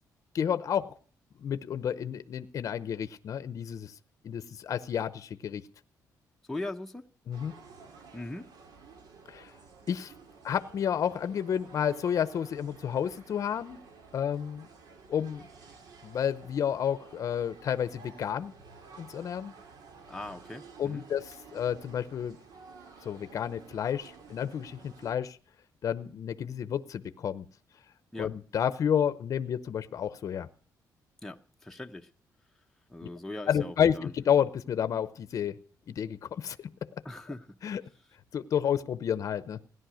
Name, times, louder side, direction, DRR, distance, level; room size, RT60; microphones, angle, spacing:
voice 1, 0.3-0.9 1.4-3.9 4.2-5.6 7.3-7.6 9.3-9.5 9.9-10.1 10.4-13.8 14.1-14.7 15.1-15.4 16.0-18.5 19.0-19.5 20.8-22.4 23.0-25.4 25.8-27.4 28.2-30.5 33.5-35.6 35.9-36.7 37.6-37.8 38.3-39.6, left 8 dB, 50° left, 13 dB, 0.7 m, -30 dB
voice 2, 6.5-7.1 8.1-8.5 20.1-21.0 28.1-28.3 31.2-32.1 32.9-34.1 37.0-37.6, left 2 dB, 5° left, 3 dB, 0.8 m, -40 dB
sound 1, 7.3-25.1, right 5 dB, 75° right, 2.3 m, -53 dB
17.0 x 11.0 x 6.3 m, 0.42 s
cardioid pair, 145°, 7 cm